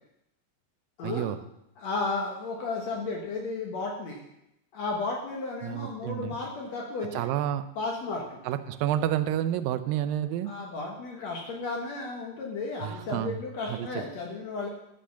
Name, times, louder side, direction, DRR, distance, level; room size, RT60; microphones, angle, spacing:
voice 1, 1.0-1.4 5.6-6.4 7.1-7.7 8.5-10.5 12.8-13.4 13.7-14.0, right 11 dB, 90° right, 13 dB, 2.4 m, -30 dB
voice 2, 1.8-4.2 4.7-7.3 7.8-8.4 10.5-14.7, left 3 dB, 60° left, -1 dB, 2.1 m, -33 dB
12.5 x 5.1 x 6.9 m, 0.83 s
omnidirectional pair, 4.0 m